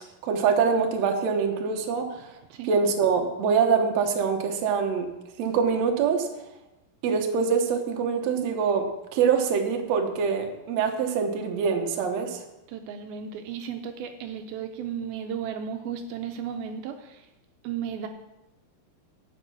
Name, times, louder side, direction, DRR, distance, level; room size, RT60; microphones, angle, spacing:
voice 1, 0.2-2.3 2.7-5.1 5.4-6.3 7.0-12.4, right 6 dB, 60° right, 3 dB, 1.9 m, -24 dB
voice 2, 12.7-17.3 17.6-18.1, right 8 dB, 85° right, 6 dB, 2.4 m, -34 dB
11.0 x 5.3 x 8.4 m, 0.97 s
omnidirectional pair, 4.5 m